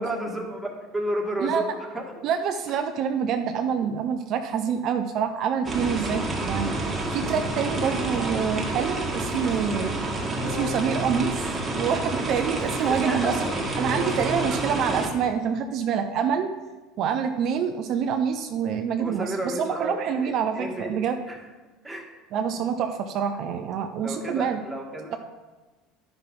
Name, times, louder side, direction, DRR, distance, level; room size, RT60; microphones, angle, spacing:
voice 1, 0.0-2.1 7.6-8.0 12.7-13.5 14.3-14.6 19.0-21.4 21.8-22.1 24.0-25.2, right 1 dB, 5° right, 0 dB, 1.9 m, -32 dB
voice 2, 2.2-6.7 7.1-10.0 10.4-11.5 11.8-13.3 13.8-16.5 17.0-21.2 22.3-24.6, right 7 dB, 55° right, 6 dB, 0.6 m, -26 dB
sound 1, 5.6-15.1, right 2 dB, 25° right, 1.6 m, -29 dB
Keyboard (musical), 7.1-15.1, left 2 dB, 65° left, 1.7 m, -39 dB
10.5 x 5.9 x 3.8 m, 1.2 s
supercardioid pair, 90°, 0 cm